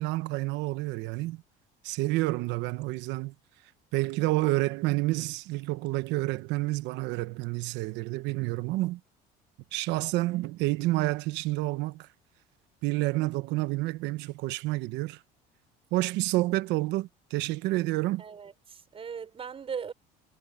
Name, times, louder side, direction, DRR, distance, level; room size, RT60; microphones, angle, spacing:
voice 1, 0.0-1.4 1.8-3.3 3.9-9.0 9.7-12.1 12.8-15.2 15.9-18.2, right 19 dB, 75° right, 1.1 m, -29 dB
voice 2, 18.2-19.9, right 6 dB, 30° right, 5.9 m, -38 dB
cardioid pair, 125°, 18 cm